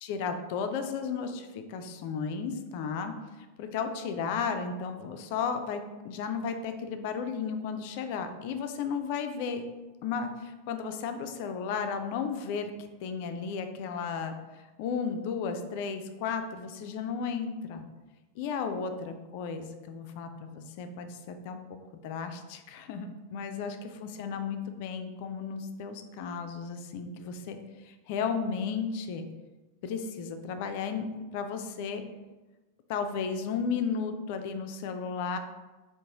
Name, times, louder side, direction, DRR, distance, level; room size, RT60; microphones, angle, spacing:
voice 1, 0.0-9.6 10.0-12.7 13.0-14.3 14.8-17.8 18.4-21.6 22.0-27.6 27.8-29.3 29.8-32.0 32.9-35.4, left 6 dB, 45° left, 7 dB, 0.3 m, -34 dB
2.9 x 2.5 x 3.5 m, 1.2 s
figure-of-eight pair, 90°, 0 cm